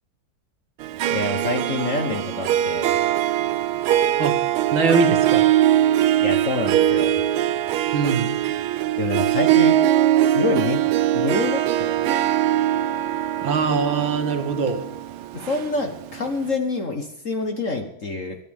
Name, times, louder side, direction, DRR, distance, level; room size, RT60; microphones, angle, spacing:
Harp, 0.8-16.2, right 12 dB, 85° right, 1.6 m, -21 dB
voice 1, 1.1-2.9 6.2-7.2 9.0-9.8 10.3-10.8 11.1-12.0 15.3-18.4, left 3 dB, 45° left, 5 dB, 1.3 m, -26 dB
voice 2, 4.7-5.5 7.9-8.3 13.4-14.8, right 4 dB, 65° right, 5 dB, 2.3 m, -22 dB
24.5 x 8.8 x 3.6 m, 0.76 s
omnidirectional pair, 2.3 m